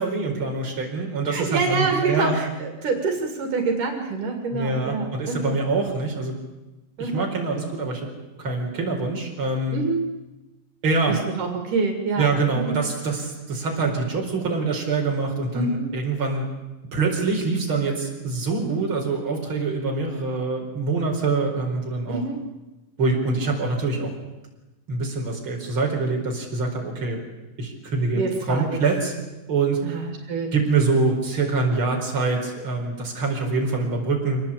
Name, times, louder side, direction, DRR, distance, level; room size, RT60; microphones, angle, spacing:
voice 1, 0.0-2.4 4.5-6.4 7.0-8.0 8.4-9.8 10.8-11.2 12.2-16.5 16.9-22.2 23.0-24.1 24.9-27.2 27.6-29.1 29.5-29.8 30.5-34.4, right 3 dB, 40° right, 0 dB, 5.3 m, -25 dB
voice 2, 1.3-5.6 7.0-7.3 9.7-10.0 11.1-12.3 12.6-12.8 15.5-15.9 22.1-22.5 28.1-28.8 29.9-30.5, right 4 dB, 80° right, 4 dB, 3.9 m, -26 dB
25.5 x 19.0 x 8.7 m, 1.1 s
omnidirectional pair, 3.6 m